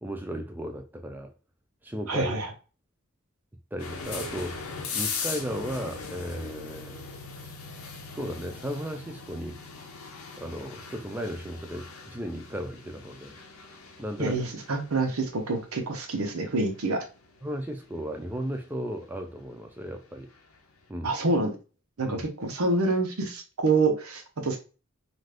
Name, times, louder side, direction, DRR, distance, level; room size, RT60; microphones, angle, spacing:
voice 1, 0.0-1.3 1.8-2.4 3.7-4.6 4.9-7.0 8.1-9.6 10.4-13.3 14.0-14.5 17.4-20.3 20.9-21.1 22.0-22.2, equal, 10° right, 0.4 m, -35 dB
voice 2, 2.1-2.5 14.2-17.0 21.0-21.6 22.0-24.6, right 3 dB, 85° right, 0.8 m, -27 dB
sound 1, 3.8-20.6, left 4 dB, 90° left, 0.7 m, -40 dB
2.5 x 2.4 x 3.4 m
head